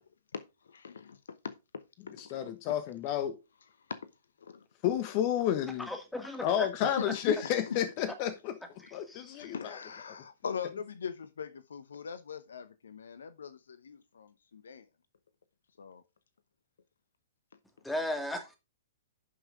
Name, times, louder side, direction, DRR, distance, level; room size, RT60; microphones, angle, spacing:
voice 1, 0.3-1.5 2.1-2.3 3.9-4.0 4.4-4.6 6.8-7.8 8.8-8.9 9.4-14.9 15.8-16.0, left 6 dB, 70° left, 0.9 m, -41 dB
voice 2, 2.3-3.4 4.8-5.9 6.4-8.5 8.9-9.8, left 10 dB, 40° left, 1.2 m, -30 dB
voice 3, 5.8-6.7 8.8-9.5 17.8-18.6, left 1 dB, 5° left, 2.1 m, -37 dB
11.0 x 5.9 x 3.7 m
figure-of-eight pair, 110°, 0 cm